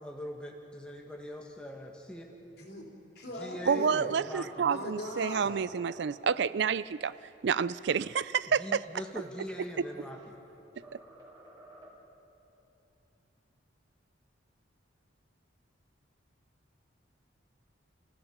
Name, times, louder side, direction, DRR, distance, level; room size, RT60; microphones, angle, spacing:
voice 1, 0.0-2.3 3.4-4.7 8.6-10.4, equal, 5° left, 0 dB, 1.7 m, -42 dB
voice 2, 2.6-2.9 3.2-4.1 4.6-5.6, left 1 dB, 55° left, -1 dB, 3.5 m, -40 dB
voice 3, 3.7-7.1 7.4-8.8, right 6 dB, 60° right, 17 dB, 0.4 m, -29 dB
sound 1, 9.4-10.5 10.8-12.2, right 1 dB, 20° right, 5.0 m, -55 dB
30.0 x 16.0 x 5.9 m, 3.0 s
head